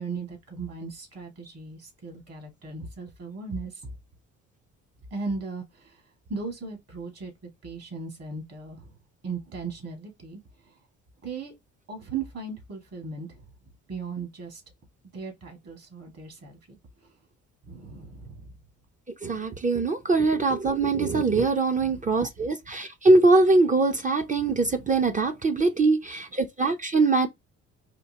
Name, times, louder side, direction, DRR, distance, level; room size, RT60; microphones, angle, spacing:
voice 1, 0.0-3.9 5.1-5.9 6.3-7.3 7.6-8.9 9.2-10.4 11.2-11.5 11.9-13.4 13.9-14.6 15.1-16.6 17.7-18.5 21.8-22.5 24.5-24.8, right 4 dB, 55° right, 2.0 m, -37 dB
voice 2, 19.2-27.3, right 3 dB, 25° right, 0.5 m, -22 dB
4.3 x 2.8 x 2.8 m
cardioid pair, 90°, 30 cm